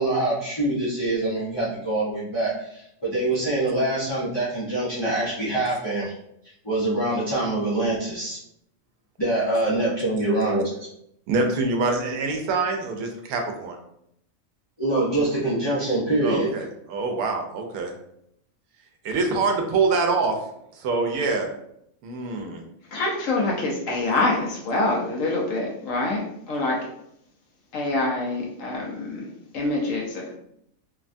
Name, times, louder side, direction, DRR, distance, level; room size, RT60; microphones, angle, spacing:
voice 1, 0.0-6.1 6.6-8.4 9.2-10.7 14.8-16.5, right 2 dB, 45° left, -8 dB, 0.3 m, -24 dB
voice 2, 11.3-13.8 16.2-17.9 19.0-20.4 20.7-21.5 22.0-22.6, right 3 dB, 90° right, 3 dB, 1.1 m, -25 dB
voice 3, 22.9-26.8 27.7-29.3 29.5-30.3, left 2 dB, 70° left, -2 dB, 1.0 m, -25 dB
3.2 x 2.2 x 2.5 m, 0.74 s
omnidirectional pair, 1.5 m